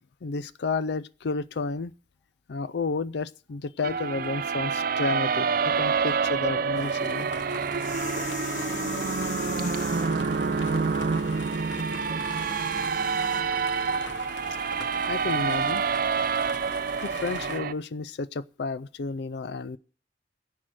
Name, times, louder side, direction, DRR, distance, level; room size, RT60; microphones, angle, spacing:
voice 1, 0.2-1.9 2.5-7.3 15.1-15.8 17.0-19.8, left 4 dB, 65° left, 0.5 m, -31 dB
sound 1, 3.8-17.7, right 5 dB, 50° right, 0.5 m, -27 dB
sound 2, 6.7-17.6, left 4 dB, 85° left, 1.3 m, -42 dB
sound 3, 7.7-10.3 12.1-13.4, left 5 dB, 45° left, 1.3 m, -39 dB
voice 2, 7.9-12.9, right 1 dB, 10° left, 2.6 m, -51 dB
10.5 x 6.3 x 8.9 m
head